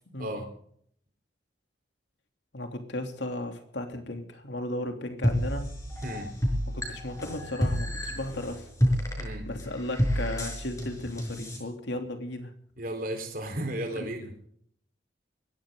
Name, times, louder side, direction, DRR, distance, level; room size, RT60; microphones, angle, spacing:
voice 1, 2.5-5.7 6.7-8.7 9.4-12.5 14.0-14.1, left 1 dB, 70° left, 5 dB, 3.2 m, -35 dB
sound 1, 5.2-11.6, equal, 15° left, 5.5 m, -30 dB
voice 2, 12.8-14.3, right 1 dB, 45° right, 5 dB, 4.2 m, -34 dB
21.0 x 16.5 x 3.9 m, 0.64 s
head